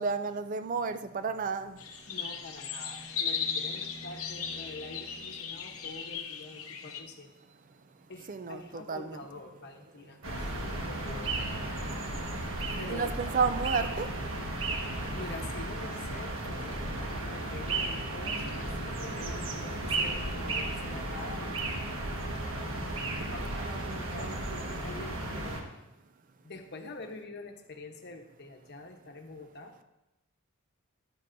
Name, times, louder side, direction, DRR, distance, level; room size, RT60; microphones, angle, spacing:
voice 1, 0.0-1.8 8.3-9.2 12.7-14.1 23.5-24.4, right 5 dB, 35° right, 9 dB, 0.4 m, -32 dB
sound 1, 1.7-6.1, equal, 30° left, 1.3 m, -52 dB
sound 2, 1.8-7.0, left 6 dB, 75° left, 0.8 m, -37 dB
voice 2, 2.1-7.3 8.1-11.3 12.8-13.2 15.1-16.9 17.2-22.2 22.7-22.9 23.3-25.6 26.4-29.7, left 2 dB, 50° left, 4 dB, 1.0 m, -46 dB
sound 3, 10.2-25.6, right 2 dB, 60° right, 1.5 m, -34 dB
12.0 x 9.9 x 2.6 m, 0.95 s
head